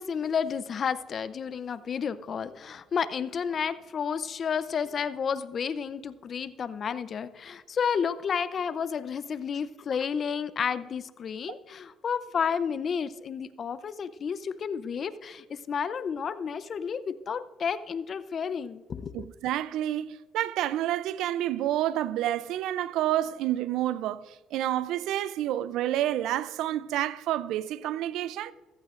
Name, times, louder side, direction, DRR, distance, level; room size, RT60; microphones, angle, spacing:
voice 1, 0.0-19.3, left 6 dB, 50° left, 0.6 m, -31 dB
voice 2, 19.1-28.5, right 13 dB, 80° right, 0.4 m, -29 dB
14.5 x 14.0 x 2.5 m
cardioid pair, 85°, 0 cm